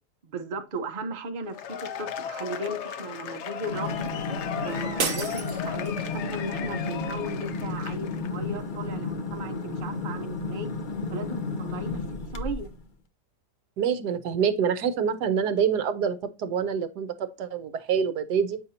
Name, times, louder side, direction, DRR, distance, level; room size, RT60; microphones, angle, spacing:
voice 1, 0.2-4.1 4.6-10.7 11.1-12.0 12.3-12.7, right 1 dB, 35° right, 0.8 m, -36 dB
Cheering / Applause / Crowd, 1.5-8.3, left 8 dB, 60° left, 0.8 m, -36 dB
sound 1, 3.6-12.8, left 3 dB, 80° left, 0.4 m, -33 dB
sound 2, 5.0-6.3, right 5 dB, 55° right, 1.3 m, -32 dB
voice 2, 13.8-18.6, right 7 dB, 75° right, 1.3 m, -26 dB
8.2 x 5.4 x 2.7 m
omnidirectional pair, 1.9 m